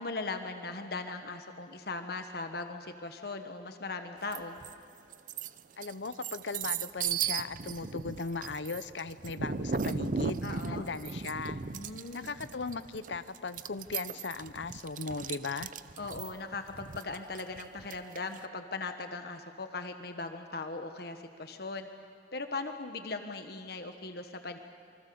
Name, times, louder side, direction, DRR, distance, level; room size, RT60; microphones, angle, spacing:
voice 1, 0.0-4.6 10.4-10.9 11.7-12.3 16.0-21.9 22.3-24.6, left 3 dB, 60° left, 6 dB, 1.3 m, -39 dB
sound 1, 4.3-4.7 5.1-18.4, right 5 dB, 45° right, 0.6 m, -36 dB
voice 2, 5.8-11.6 12.1-15.7, left 4 dB, 75° left, 13 dB, 0.8 m, -38 dB
27.5 x 24.5 x 7.0 m, 2.2 s
head